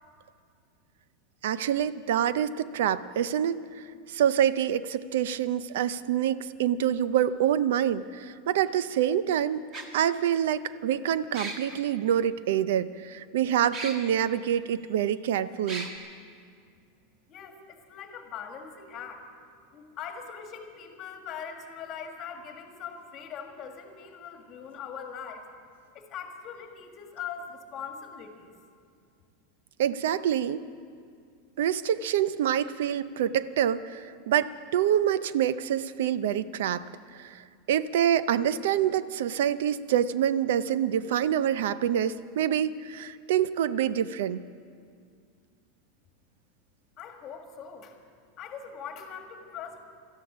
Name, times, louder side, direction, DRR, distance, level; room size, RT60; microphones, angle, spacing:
voice 1, 1.4-3.8 4.1-9.6 9.9-15.9 29.8-30.6 31.6-36.8 37.2-37.3 37.7-44.4, right 10 dB, 75° right, 16 dB, 0.5 m, -26 dB
sound 1, 7.2-7.3 8.7-8.8 9.7-9.9 11.3-11.8 13.7-14.0 14.6-14.7 15.7-15.9, right 3 dB, 30° right, 1.5 m, -36 dB
voice 2, 17.3-19.3 19.7-25.5 25.9-28.5 47.0-48.0 48.4-49.8, left 7 dB, 30° left, 4 dB, 1.7 m, -41 dB
17.5 x 13.5 x 6.1 m, 2.2 s
supercardioid pair, 165°, 0 cm